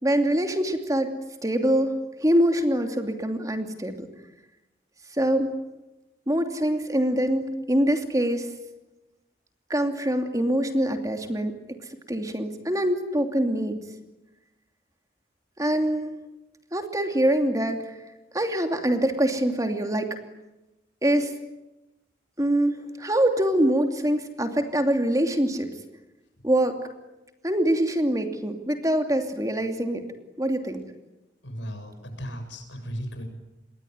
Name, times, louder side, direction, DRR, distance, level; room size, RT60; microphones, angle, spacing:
voice 1, 0.0-4.1 5.1-5.6 6.3-8.5 9.7-11.5 11.8-13.8 15.6-16.2 16.7-17.9 18.3-20.2 21.0-21.3 22.4-25.7 26.4-26.8 27.4-30.0 30.4-30.8, right 1 dB, 20° right, 5 dB, 2.7 m, -24 dB
voice 2, 31.4-33.2, equal, 85° left, 6 dB, 7.8 m, -36 dB
27.5 x 22.0 x 9.6 m, 0.99 s
head